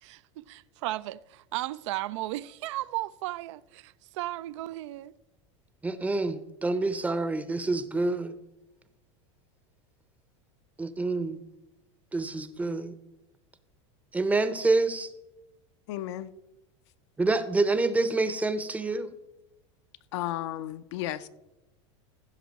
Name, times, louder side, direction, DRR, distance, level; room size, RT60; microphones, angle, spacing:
voice 1, 0.0-5.1, right 16 dB, 75° right, 0.4 m, -35 dB
voice 2, 5.8-8.4 10.8-11.4 12.1-13.0 14.1-15.1 17.2-19.2, right 3 dB, 10° right, 0.6 m, -27 dB
voice 3, 15.9-16.3 20.1-21.3, left 13 dB, 65° left, 0.7 m, -33 dB
15.0 x 6.1 x 4.1 m
supercardioid pair, 130°, 16 cm